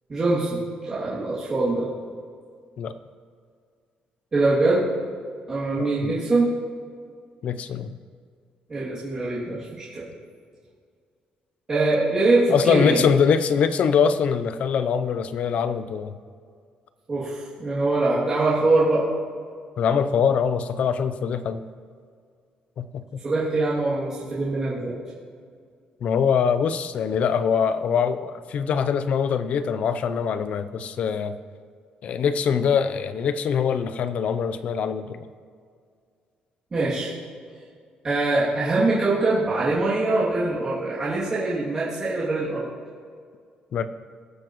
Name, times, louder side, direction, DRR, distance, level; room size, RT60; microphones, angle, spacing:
voice 1, 0.1-1.9 4.3-4.9 5.5-6.5 8.7-10.1 11.7-13.0 17.1-19.1 23.2-25.0 36.7-37.1 38.0-42.7, right 2 dB, 25° right, -11 dB, 2.6 m, -23 dB
voice 2, 5.8-6.2 7.4-8.0 12.5-16.2 19.8-21.6 22.8-23.2 26.0-31.4 32.0-35.3 43.7-43.9, left 7 dB, 50° left, 12 dB, 0.6 m, -23 dB
20.5 x 6.9 x 3.1 m, 2.1 s
cardioid pair, 165°, 3 cm